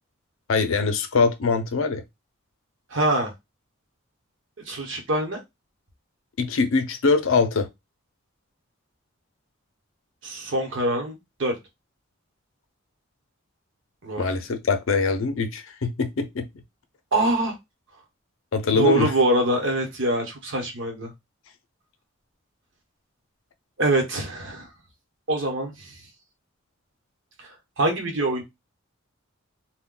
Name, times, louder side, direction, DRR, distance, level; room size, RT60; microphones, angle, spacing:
voice 1, 0.5-2.0 6.4-7.7 14.2-16.5 18.5-19.1, left 4 dB, 70° left, 0.5 m, -23 dB
voice 2, 2.9-3.3 4.7-5.4 10.2-11.6 14.0-14.2 17.1-17.5 18.7-21.1 23.8-24.7 25.3-26.0 27.4-27.5 27.8-28.4, right 2 dB, 60° right, 0.9 m, -24 dB
2.3 x 2.1 x 3.6 m
head